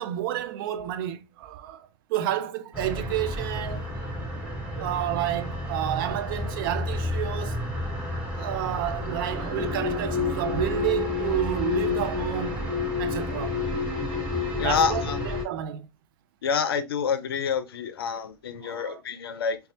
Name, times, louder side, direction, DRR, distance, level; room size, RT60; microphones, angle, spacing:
voice 1, 0.0-3.9 4.7-7.6 8.4-12.6 13.0-13.6 14.6-15.9 18.6-19.0, right 12 dB, 65° right, 0.5 m, -30 dB
sound 1, 2.7-15.4, left 3 dB, 10° right, 1.9 m, -30 dB
voice 2, 14.6-15.2 16.4-19.6, left 6 dB, 80° left, 0.5 m, -27 dB
4.0 x 2.3 x 2.6 m
figure-of-eight pair, 75°, 12 cm